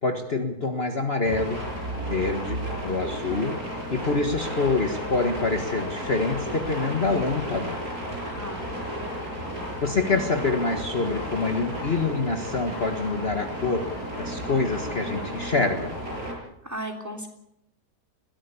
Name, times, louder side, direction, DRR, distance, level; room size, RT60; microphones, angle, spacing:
voice 1, 0.0-1.6 1.9-7.8 9.8-16.0, left 3 dB, 35° left, 4 dB, 1.8 m, -26 dB
sound 1, 1.2-16.3, equal, 60° right, 7.2 m, -33 dB
voice 2, 8.2-8.7 16.6-17.3, right 1 dB, 10° right, 4 dB, 3.2 m, -35 dB
21.5 x 16.5 x 8.5 m, 0.80 s
omnidirectional pair, 1.8 m